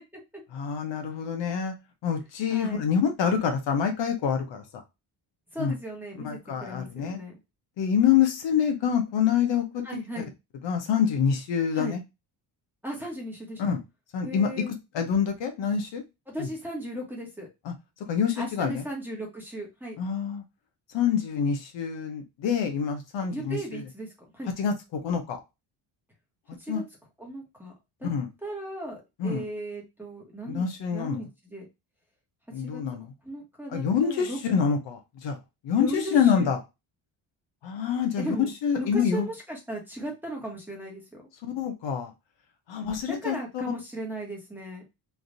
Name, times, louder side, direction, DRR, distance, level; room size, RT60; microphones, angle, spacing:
voice 1, 0.5-1.7 2.0-4.6 5.6-5.7 6.2-7.2 7.8-9.8 10.2-10.3 10.6-12.0 13.6-13.8 14.1-14.5 14.9-16.0 16.4-16.5 17.7-17.8 18.1-18.8 20.0-20.4 20.9-23.8 24.6-25.4 26.7-26.8 28.0-28.3 29.2-29.4 30.5-31.3 32.5-33.1 33.7-35.4 35.6-36.6 37.6-38.4 38.6-39.3 41.4-42.1 42.7-43.4, left 7 dB, 70° left, 5 dB, 0.8 m, -26 dB
voice 2, 2.5-2.8 5.5-7.4 9.8-10.3 11.7-12.0 12.8-13.8 14.2-14.7 16.3-17.5 18.4-20.0 23.3-24.5 26.6-26.8 27.2-27.7 28.0-28.1 28.4-30.6 30.9-31.7 32.6-32.8 33.2-34.4 35.8-36.5 38.2-38.5 38.8-41.3 42.8-44.8, right 1 dB, 5° right, -1 dB, 1.2 m, -36 dB
3.3 x 2.5 x 2.5 m, 0.23 s
cardioid pair, 115°, 46 cm